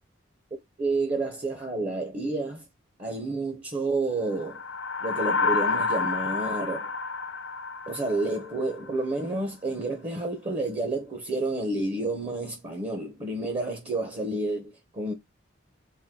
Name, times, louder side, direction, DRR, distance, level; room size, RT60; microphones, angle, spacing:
voice 1, 0.8-2.6 3.0-4.6 5.0-6.9 7.9-15.1, right 2 dB, 30° right, 0.6 m, -30 dB
sound 1, 4.4-8.9, left 4 dB, 75° left, 1.0 m, -29 dB
4.3 x 2.1 x 3.5 m
head